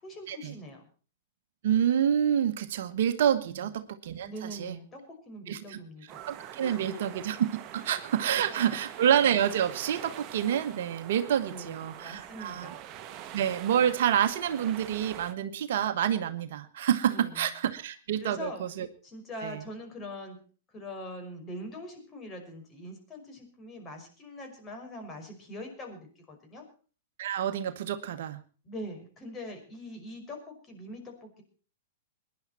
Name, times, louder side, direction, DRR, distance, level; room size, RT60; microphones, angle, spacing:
voice 1, 0.0-0.8 3.5-3.7 4.2-7.2 7.8-7.9 8.3-8.8 11.4-12.8 17.1-17.5 18.2-18.6 19.0-20.4 20.7-26.7 28.6-31.4, equal, 25° left, 4 dB, 5.6 m, -43 dB
voice 2, 1.6-4.7 5.5-5.8 6.3-12.7 13.3-18.9 19.4-19.6 27.2-28.4, right 9 dB, 60° right, 9 dB, 1.3 m, -28 dB
sound 1, 6.1-15.3, right 11 dB, 35° right, 1.3 m, -44 dB
22.0 x 11.0 x 4.4 m, 0.39 s
hypercardioid pair, 105°, 0 cm